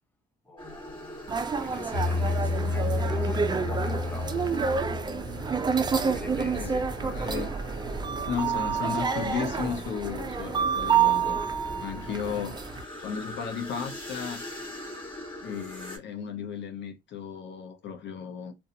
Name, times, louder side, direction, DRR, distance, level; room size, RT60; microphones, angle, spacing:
voice 1, 0.5-4.4 5.3-5.4 6.0-6.9, left 2 dB, 10° left, 0.8 m, -44 dB
sound 1, 0.6-16.0, left 1 dB, 25° left, 1.4 m, -43 dB
sound 2, 1.3-12.8, right 6 dB, 20° right, 0.4 m, -28 dB
sound 3, 1.9-9.8, left 3 dB, 45° left, 0.9 m, -33 dB
voice 2, 3.1-3.6 6.5-6.7 7.0-7.6 8.3-11.5 11.8-12.6 13.0-14.4 15.4-18.5, left 7 dB, 65° left, 0.6 m, -35 dB
2.5 x 2.2 x 2.7 m
cardioid pair, 90°, 20 cm